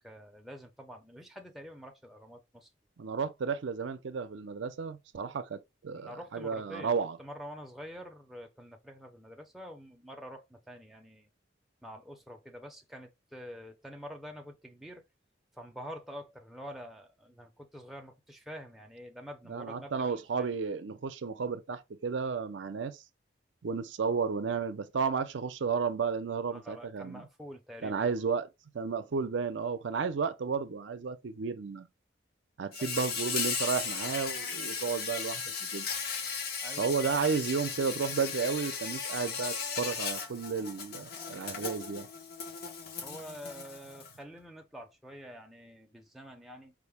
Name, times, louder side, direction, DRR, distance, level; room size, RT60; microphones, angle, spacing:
voice 1, 0.0-2.7 5.9-11.3 11.8-15.0 15.5-20.5 26.5-28.1 32.8-32.9 36.6-37.2 43.0-46.7, equal, ahead, 0.5 m, -47 dB
voice 2, 3.0-7.2 19.5-23.0 23.6-27.3 27.8-28.5 28.7-31.9 32.6-35.9 36.8-42.1, right 5 dB, 75° right, 0.5 m, -33 dB
Insect, 32.7-44.1, left 5 dB, 50° left, 0.7 m, -36 dB
4.8 x 2.1 x 3.5 m
head